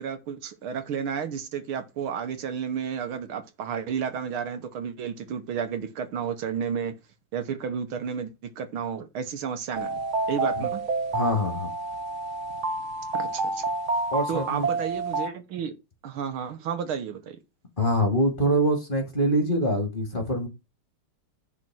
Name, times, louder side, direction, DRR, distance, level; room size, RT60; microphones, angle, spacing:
voice 1, 0.0-6.9 7.3-10.0 10.3-10.8 13.1-13.6 14.3-15.7 16.0-17.4, right 7 dB, 70° right, 1.9 m, -32 dB
sound 1, 9.7-15.3, right 3 dB, 45° right, 1.1 m, -29 dB
voice 2, 11.1-11.7 14.1-14.7 17.8-20.5, equal, 25° left, 2.4 m, -24 dB
10.5 x 4.4 x 6.2 m
omnidirectional pair, 2.4 m